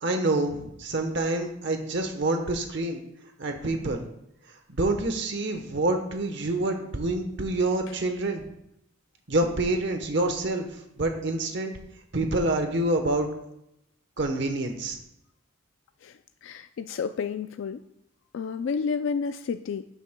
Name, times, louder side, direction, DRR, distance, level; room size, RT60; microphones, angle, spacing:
voice 1, 0.0-3.0 3.4-4.0 4.7-8.5 9.3-10.7 11.0-11.8 12.1-13.3 14.2-15.0, right 2 dB, 60° right, 5 dB, 1.0 m, -27 dB
voice 2, 16.0-17.8 18.3-19.9, left 5 dB, 70° left, 9 dB, 0.3 m, -31 dB
12.0 x 8.3 x 2.2 m, 0.80 s
head